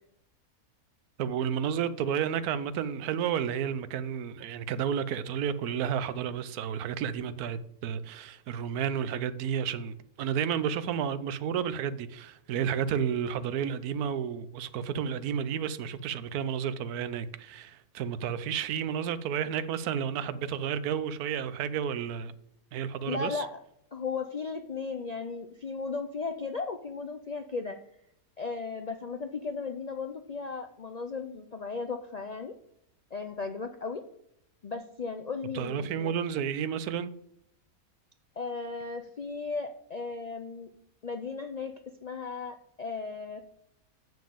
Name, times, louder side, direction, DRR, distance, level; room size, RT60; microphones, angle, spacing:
voice 1, 1.2-22.3 22.7-23.5 35.5-37.1, right 8 dB, 85° right, 1.2 m, -31 dB
voice 2, 23.0-23.6 23.9-27.8 28.4-32.5 33.1-34.0 34.6-36.1 38.4-40.7 41.0-41.7 42.0-43.4, left 4 dB, 80° left, 0.3 m, -36 dB
7.3 x 6.2 x 6.9 m
omnidirectional pair, 1.6 m